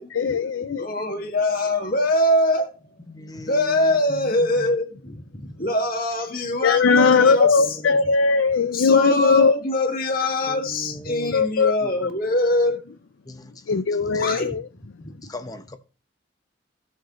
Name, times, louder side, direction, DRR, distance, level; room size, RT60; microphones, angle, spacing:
voice 1, 0.1-0.9 6.6-9.5 11.3-11.7 13.7-14.6, left 5 dB, 75° left, 0.5 m, -19 dB
voice 2, 0.8-2.7 3.4-7.8 8.7-12.8 14.0-14.5 15.0-15.3, left 1 dB, 45° left, 1.9 m, -23 dB
voice 3, 3.1-4.7 7.0-7.9 10.5-11.4 11.8-11.9 13.3-13.7 14.1-14.5 15.2-15.8, left 1 dB, 20° left, 0.8 m, -39 dB
16.5 x 6.4 x 3.1 m
head